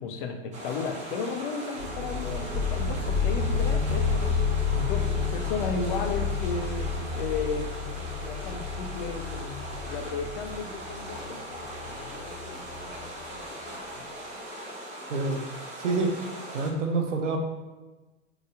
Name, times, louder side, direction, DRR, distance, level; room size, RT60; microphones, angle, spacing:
voice 1, 0.0-4.4 4.7-9.6 9.9-14.0, left 4 dB, 45° left, 5 dB, 0.5 m, -35 dB
sound 1, 0.5-16.7, right 1 dB, 20° right, 0.8 m, -40 dB
sound 2, 1.8-13.2, left 5 dB, 90° right, 1.1 m, -30 dB
voice 2, 15.1-15.4 15.8-16.1 16.5-17.4, right 3 dB, 70° right, 3 dB, 0.7 m, -27 dB
3.8 x 2.9 x 2.4 m, 1.2 s
figure-of-eight pair, 85°, 38 cm